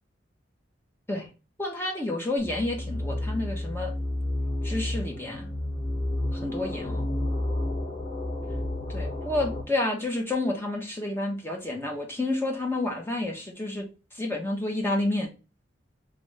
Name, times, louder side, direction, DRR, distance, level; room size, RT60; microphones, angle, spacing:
voice 1, 1.6-3.9 4.6-5.5 6.3-7.1 8.9-13.9 14.1-15.3, left 2 dB, 15° left, 0 dB, 1.0 m, -30 dB
sound 1, 2.4-9.6, left 1 dB, 35° left, 1.3 m, -31 dB
3.4 x 3.2 x 3.3 m, 0.32 s
head